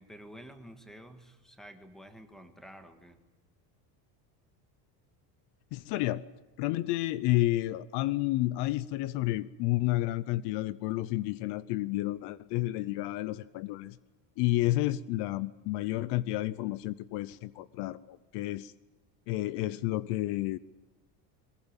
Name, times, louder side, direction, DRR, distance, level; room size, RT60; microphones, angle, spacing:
voice 1, 0.0-3.2, equal, ahead, 7 dB, 1.8 m, -50 dB
voice 2, 5.7-6.3 6.6-14.0 14.4-18.7 19.3-20.6, left 17 dB, 65° left, 18 dB, 0.8 m, -30 dB
22.5 x 20.5 x 9.0 m, 1.1 s
cardioid pair, 170°, 45 cm